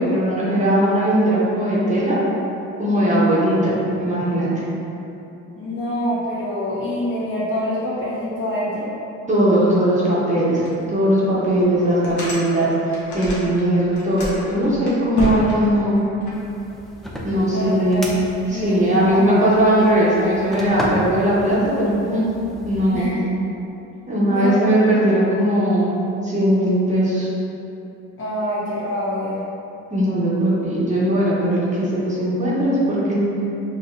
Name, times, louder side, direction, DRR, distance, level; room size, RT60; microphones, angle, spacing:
voice 1, 0.0-2.2 2.8-4.5 9.3-10.6 10.9-16.0 17.2-18.1 18.5-22.2 22.6-23.1 24.1-26.0 26.2-27.3 29.9-33.3, right 1 dB, 25° right, -8 dB, 1.0 m, -19 dB
voice 2, 5.6-8.9 17.4-18.0 18.5-19.4 22.9-23.2 24.3-24.7 28.2-29.4, left 1 dB, 40° left, -9 dB, 1.3 m, -26 dB
sound 1, 10.6-10.7 11.2-11.3 11.8-13.6 13.9-16.3, left 2 dB, 70° left, 1.1 m, -29 dB
sound 2, 16.3-23.1, equal, ahead, 0.5 m, -33 dB
4.6 x 2.7 x 2.6 m, 2.9 s
cardioid pair, 90°, 30 cm